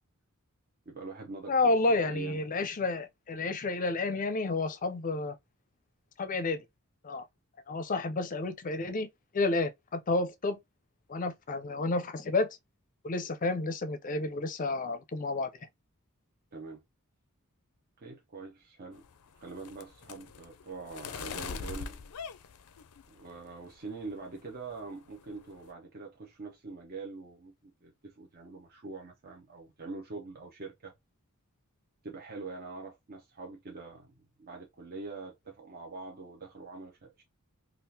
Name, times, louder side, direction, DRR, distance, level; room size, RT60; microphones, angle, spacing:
voice 1, 0.9-1.8 2.0-2.4 16.5-16.8 18.0-19.0 19.3-22.0 23.1-30.9 32.0-37.2, right 3 dB, 45° right, 0.7 m, -44 dB
voice 2, 1.5-5.3 6.2-6.6 7.0-7.2 7.7-9.1 9.3-10.6 11.1-12.6 13.0-15.5, left 3 dB, 35° left, 0.5 m, -30 dB
sound 1, 18.9-23.4 23.8-24.2 24.5-24.8 25.1-25.7, left 6 dB, 90° left, 0.5 m, -43 dB
3.6 x 2.4 x 2.7 m
head